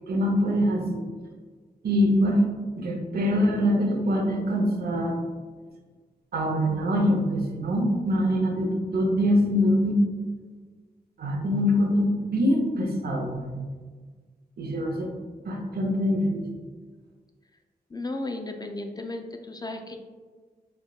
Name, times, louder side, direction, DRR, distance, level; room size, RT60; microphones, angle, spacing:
voice 1, 0.1-1.0 1.8-2.4 2.8-5.2 6.3-10.0 11.2-13.7 14.6-15.1 15.5-16.5, equal, 65° right, 1 dB, 0.7 m, -24 dB
voice 2, 17.9-20.0, left 2 dB, 25° left, 5 dB, 0.3 m, -34 dB
4.2 x 2.2 x 2.3 m, 1.4 s
cardioid pair, 45°, 17 cm